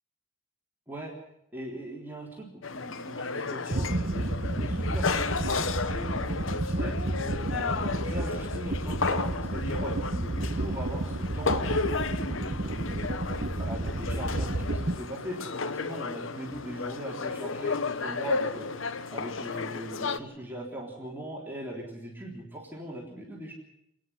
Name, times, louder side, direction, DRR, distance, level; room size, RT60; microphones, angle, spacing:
voice 1, 1.5-7.0 7.5-13.2 13.6-18.7 19.1-23.5, right 1 dB, 10° right, -3 dB, 3.6 m, -40 dB
sound 1, 2.6-20.2, left 4 dB, 85° left, 1.0 m, -33 dB
sound 2, 3.7-15.0, right 2 dB, 50° right, 1.1 m, -31 dB
27.5 x 10.0 x 9.9 m, 0.80 s
head